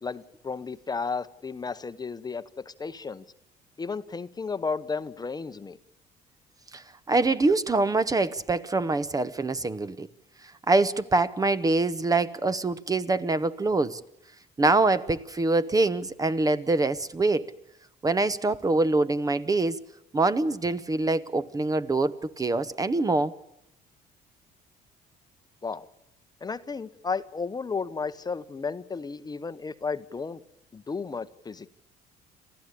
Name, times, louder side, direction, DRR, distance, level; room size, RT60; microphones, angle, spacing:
voice 1, 0.0-3.2 3.8-5.8 25.6-25.9 26.4-30.4 30.7-31.7, left 4 dB, 25° left, 0.9 m, -33 dB
voice 2, 6.7-10.1 10.7-14.0 14.6-17.5 18.0-19.8 20.1-23.3, right 3 dB, 20° right, 0.9 m, -24 dB
28.0 x 14.5 x 10.0 m
cardioid pair, 110°, 17 cm